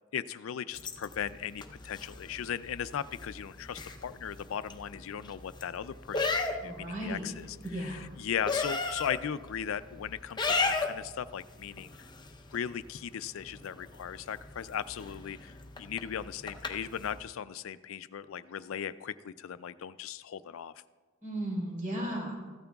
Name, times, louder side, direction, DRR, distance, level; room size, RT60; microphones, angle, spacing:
voice 1, 0.1-12.1 12.5-20.7, left 8 dB, 80° left, 14 dB, 0.4 m, -38 dB
sound 1, 0.7-17.2, left 3 dB, 20° left, 0.7 m, -38 dB
voice 2, 6.6-7.3 7.6-8.1 21.2-22.4, right 1 dB, 45° right, -3 dB, 4.0 m, -35 dB
15.5 x 12.5 x 2.3 m, 1.4 s
head